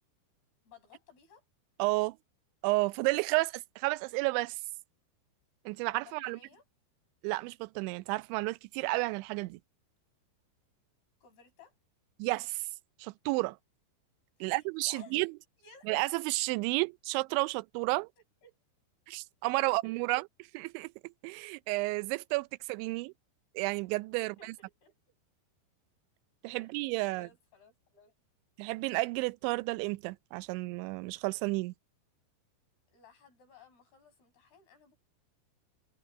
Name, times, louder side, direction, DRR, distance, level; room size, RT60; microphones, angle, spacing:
voice 1, 0.7-1.4 6.0-6.6 11.2-11.7 14.4-15.2 15.6-15.9 18.4-18.6 19.6-20.1 24.2-24.9 26.5-26.7 27.1-28.1 32.9-35.0, left 5 dB, 60° left, 8.4 m, -58 dB
voice 2, 1.8-2.2 2.6-4.6 5.7-6.4 7.2-9.6 12.2-12.7 13.0-13.6 14.4-15.3 15.9-18.1 19.1-20.2 20.5-23.1 23.6-24.5 26.4-27.3 28.6-31.7, right 23 dB, 85° right, 2.9 m, -32 dB
omnidirectional pair, 5.3 m